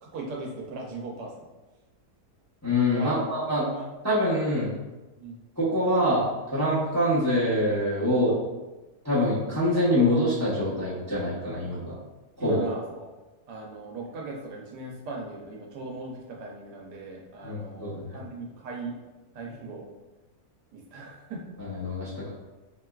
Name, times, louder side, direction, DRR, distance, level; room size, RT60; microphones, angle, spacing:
voice 1, 0.0-1.5 2.9-3.2 3.7-3.9 5.2-5.4 12.4-13.1 13.5-19.0 19.3-19.8 20.7-21.4, right 2 dB, 85° right, -1 dB, 1.3 m, -38 dB
voice 2, 2.6-3.7 4.0-4.7 5.6-8.4 9.0-11.9 12.4-12.6 17.4-18.2 21.6-22.3, left 1 dB, 15° left, -10 dB, 0.5 m, -25 dB
4.2 x 2.3 x 2.3 m, 1.1 s
omnidirectional pair, 1.7 m